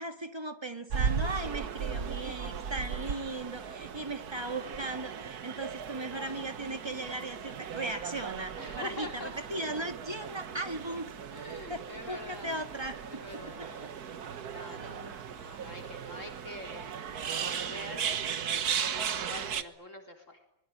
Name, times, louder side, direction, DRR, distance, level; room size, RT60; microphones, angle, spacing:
voice 1, 0.0-11.1 11.7-13.2 13.6-13.9 14.2-14.3 14.8-15.2, right 2 dB, 15° right, 8 dB, 1.8 m, -38 dB
sound 1, 0.9-19.6, right 7 dB, 60° right, 1.7 m, -37 dB
voice 2, 8.6-9.3 11.3-12.5 13.0-17.1 17.3-18.2 18.9-20.4, left 2 dB, 45° left, 3 dB, 4.0 m, -45 dB
25.0 x 21.5 x 10.0 m, 0.77 s
omnidirectional pair, 1.9 m